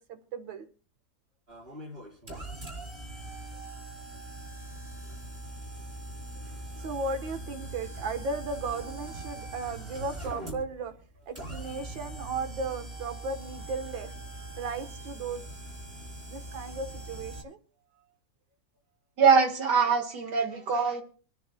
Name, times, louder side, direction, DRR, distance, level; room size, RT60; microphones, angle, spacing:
voice 1, 0.1-0.7 4.1-4.2 6.8-11.0 11.3-14.1 14.6-15.6 16.3-17.6, right 3 dB, 85° right, 2.0 m, -35 dB
sound 1, 1.5-17.4, right 2 dB, 20° right, 4.4 m, -41 dB
voice 2, 19.2-21.0, right 5 dB, 65° right, 2.2 m, -23 dB
27.0 x 10.5 x 2.2 m
omnidirectional pair, 2.0 m